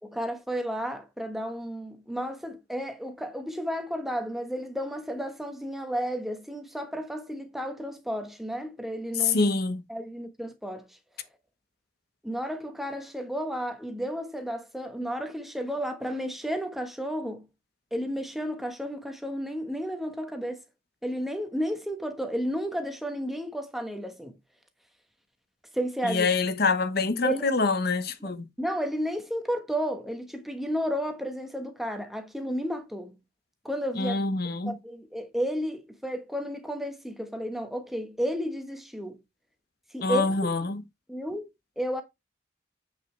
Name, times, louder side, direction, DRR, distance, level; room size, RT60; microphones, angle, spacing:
voice 1, 0.0-9.5 9.9-11.0 12.2-17.5 17.9-20.6 21.0-24.3 25.7-26.3 27.2-27.4 28.2-28.3 28.6-33.1 33.6-34.2 34.7-39.2 39.9-40.4 41.1-41.4 41.8-42.0, equal, ahead, 1.2 m, -32 dB
voice 2, 9.2-9.8 26.0-28.5 34.0-34.7 40.0-40.8, left 3 dB, 50° left, 1.0 m, -25 dB
7.8 x 6.2 x 3.3 m
head